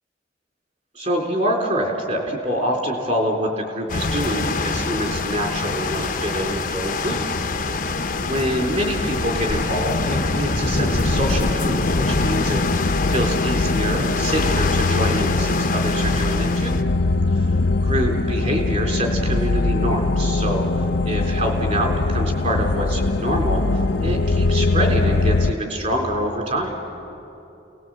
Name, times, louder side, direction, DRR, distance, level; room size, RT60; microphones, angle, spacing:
voice 1, 0.9-7.3 8.2-16.8 17.4-17.5 17.9-20.7 21.0-26.7, equal, 40° right, 1 dB, 3.8 m, -26 dB
sound 1, 3.9-16.8, left 3 dB, 50° left, 0.9 m, -25 dB
sound 2, 7.3-25.5, left 2 dB, 90° left, 0.7 m, -23 dB
29.5 x 19.0 x 7.8 m, 2.8 s
head